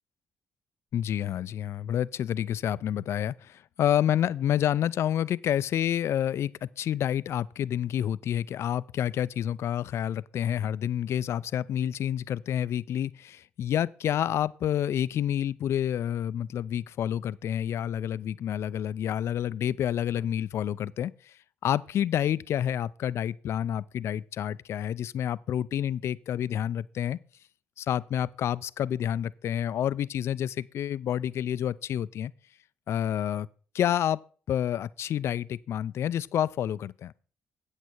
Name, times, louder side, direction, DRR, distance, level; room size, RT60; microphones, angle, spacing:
voice 1, 0.9-21.3 21.6-27.2 27.8-32.3 32.9-33.5 33.7-34.2 34.5-37.1, left 10 dB, 60° left, 0.4 m, -29 dB
8.2 x 8.2 x 4.5 m
hypercardioid pair, 50°, 5 cm